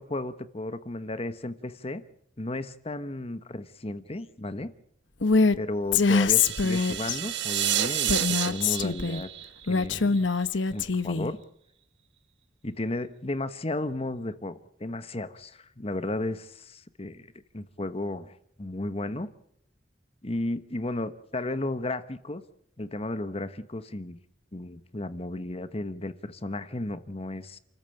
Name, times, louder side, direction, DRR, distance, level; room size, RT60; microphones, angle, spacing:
voice 1, 0.0-2.0 2.4-4.7 5.6-9.3 9.6-10.3 10.5-11.4 12.6-17.3 17.5-19.3 20.2-22.4 22.8-24.2 24.5-27.6, left 2 dB, 30° left, 12 dB, 1.1 m, -34 dB
Female speech woman speaking, 5.2-5.6 5.9-7.2 8.1-9.2 9.7-11.3, left 4 dB, 75° left, 1.0 m, -24 dB
sound 1, 6.3-10.4, right 10 dB, 65° right, 1.6 m, -30 dB
29.0 x 14.0 x 9.1 m, 0.69 s
head